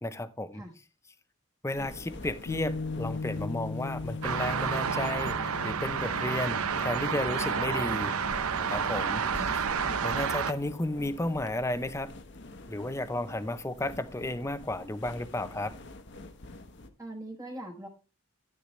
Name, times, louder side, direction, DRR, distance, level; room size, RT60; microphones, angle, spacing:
voice 1, 0.0-0.6 1.6-8.1 8.6-9.4 10.0-12.1 12.7-15.7, left 1 dB, 15° left, 0.6 m, -33 dB
sound 1, 1.7-16.9, left 2 dB, 55° left, 1.1 m, -46 dB
Piano, 2.5-9.1, left 3 dB, 85° left, 0.6 m, -39 dB
sound 2, 4.2-10.5, right 6 dB, 80° right, 0.8 m, -30 dB
voice 2, 17.0-17.9, right 1 dB, 15° right, 1.2 m, -41 dB
11.5 x 10.0 x 3.1 m
head